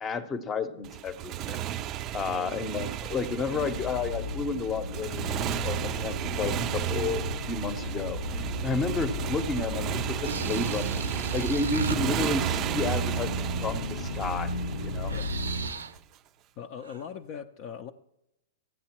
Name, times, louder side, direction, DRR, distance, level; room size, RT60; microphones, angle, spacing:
voice 1, 0.0-1.6 2.1-8.2 8.6-11.0 11.3-14.5 14.8-15.1, left 4 dB, 25° left, 13 dB, 0.8 m, -31 dB
Motorcycle, 0.8-16.0, right 12 dB, 35° right, 0.4 m, -34 dB
voice 2, 2.3-2.6 12.1-12.2 15.1-15.3 16.6-17.9, left 8 dB, 45° left, 6 dB, 0.5 m, -40 dB
sound 1, 3.3-15.7, left 1 dB, 90° left, 0.9 m, -34 dB
sound 2, 10.2-12.0 14.2-14.4 14.8-16.0 16.8-17.0, right 5 dB, 85° right, 0.5 m, -36 dB
14.5 x 9.2 x 3.0 m, 0.84 s
hypercardioid pair, 115°, 0 cm